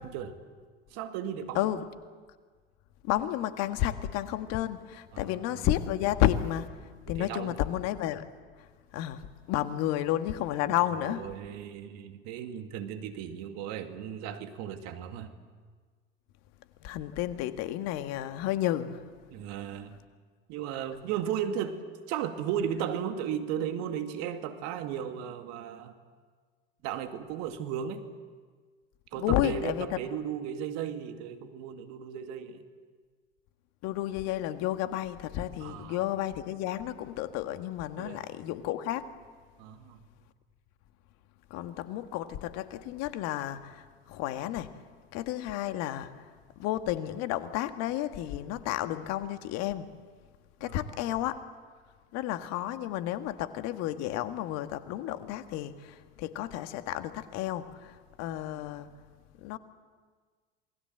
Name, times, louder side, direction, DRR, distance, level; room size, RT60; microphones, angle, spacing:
voice 1, 0.9-1.7 5.1-5.6 7.2-7.6 10.7-15.3 19.3-20.0 20.5-21.8 22.1-26.0 26.8-28.0 29.1-32.6 35.6-36.0 38.0-38.2 39.6-40.0 50.6-51.0, right 9 dB, 60° right, 7 dB, 2.3 m, -35 dB
voice 2, 3.0-6.7 7.1-8.2 8.9-9.2 9.5-11.2 16.8-19.0 29.2-29.9 33.8-39.1 41.5-43.8 44.1-44.7 45.1-46.1 46.6-49.9 50.6-51.4 52.1-58.9 59.4-59.6, left 13 dB, 60° left, 9 dB, 1.7 m, -31 dB
27.5 x 20.5 x 7.9 m, 1.5 s
hypercardioid pair, 70°, 29 cm